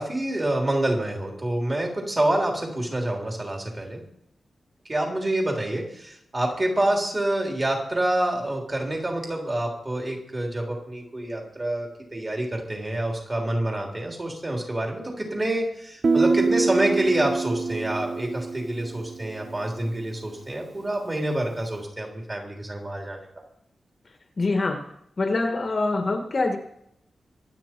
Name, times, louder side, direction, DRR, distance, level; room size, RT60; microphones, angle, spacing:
voice 1, 0.0-4.0 4.9-23.2, right 1 dB, 25° right, 0 dB, 3.4 m, -27 dB
Guitar, 16.0-19.7, right 4 dB, 45° right, 0.6 m, -25 dB
voice 2, 24.4-24.8 25.2-26.6, left 3 dB, 35° left, 5 dB, 1.4 m, -24 dB
24.5 x 8.7 x 4.5 m, 0.74 s
wide cardioid pair, 170°, 0 cm